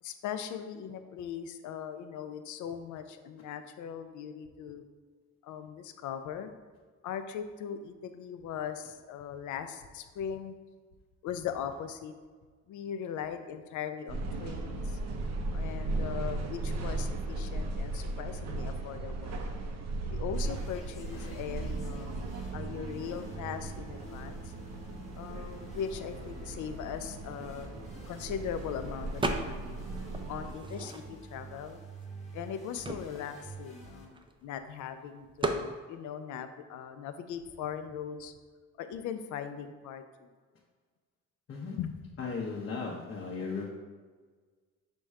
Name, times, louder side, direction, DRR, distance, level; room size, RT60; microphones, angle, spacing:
voice 1, 0.0-4.8 5.4-6.5 7.0-10.6 11.2-12.1 12.7-15.0 15.5-19.4 20.1-24.5 25.2-27.8 28.1-29.8 30.3-31.8 32.3-38.3 38.8-40.3 41.8-42.2, left 8 dB, 75° left, 9 dB, 0.5 m, -39 dB
sound 1, 14.1-30.5, right 2 dB, 60° right, 0.6 m, -37 dB
sound 2, 20.3-34.1, right 2 dB, 20° left, 1.1 m, -49 dB
sound 3, 29.2-29.8 30.1-31.4 32.0-32.1 32.3-34.6 35.4-35.7, right 2 dB, 15° right, 0.4 m, -35 dB
voice 2, 42.2-43.7, left 4 dB, 45° left, -3 dB, 0.7 m, -36 dB
5.2 x 2.2 x 4.6 m, 1.5 s
cardioid pair, 90°, 30 cm